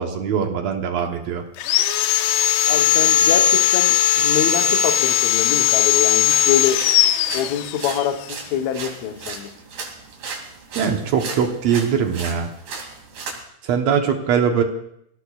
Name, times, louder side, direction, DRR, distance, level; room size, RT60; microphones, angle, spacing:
voice 1, 0.0-1.4 10.7-12.5 13.6-14.6, right 7 dB, 75° right, 3 dB, 1.5 m, -21 dB
Sawing, 1.6-8.1, left 11 dB, 85° left, 2.8 m, -18 dB
voice 2, 2.7-6.8 7.3-9.6, left 9 dB, 70° left, 5 dB, 1.7 m, -25 dB
sound 1, 6.3-13.4, right 4 dB, 60° right, 4.2 m, -36 dB
27.0 x 17.0 x 2.4 m, 0.75 s
omnidirectional pair, 4.7 m